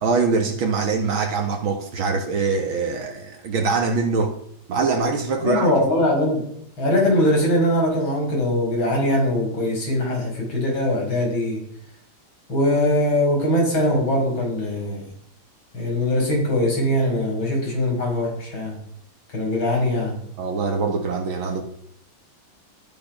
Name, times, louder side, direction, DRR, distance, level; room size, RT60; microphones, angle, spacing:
voice 1, 0.0-4.4 4.7-5.7 20.4-21.6, right 4 dB, 80° right, 2.3 m, -23 dB
voice 2, 5.4-6.4 6.8-11.6 12.5-15.0 15.7-18.7 19.3-20.2, left 1 dB, 85° left, 6.9 m, -21 dB
17.0 x 11.5 x 6.0 m
omnidirectional pair, 2.2 m